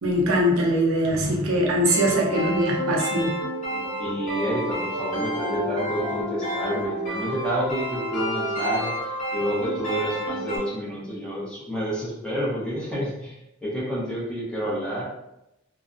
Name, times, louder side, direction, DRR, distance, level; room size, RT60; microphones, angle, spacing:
voice 1, 0.0-3.4, equal, 85° right, -1 dB, 0.6 m, -22 dB
sound 1, 1.8-10.6, equal, 35° left, 0.9 m, -29 dB
voice 2, 3.7-13.3 13.6-15.1, equal, 5° left, -7 dB, 0.7 m, -29 dB
2.5 x 2.2 x 2.4 m, 0.88 s
head